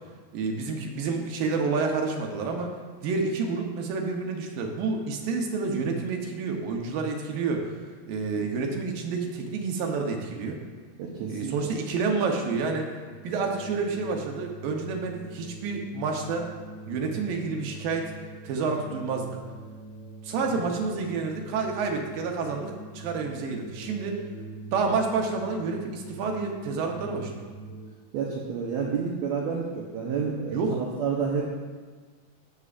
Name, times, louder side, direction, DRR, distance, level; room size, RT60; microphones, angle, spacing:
voice 1, 0.3-2.7 3.0-7.7 8.1-10.6 11.3-12.9 13.2-16.5 16.9-18.1 18.4-19.4 20.2-24.2 24.7-27.5 30.5-30.8, right 4 dB, 75° right, 2 dB, 2.5 m, -29 dB
voice 2, 11.0-11.7 20.5-20.6 28.1-31.4, right 6 dB, 90° right, -3 dB, 1.6 m, -30 dB
sound 1, 13.0-27.9, right 2 dB, 30° left, 1.8 m, -43 dB
13.5 x 8.2 x 2.5 m, 1.5 s
omnidirectional pair, 4.4 m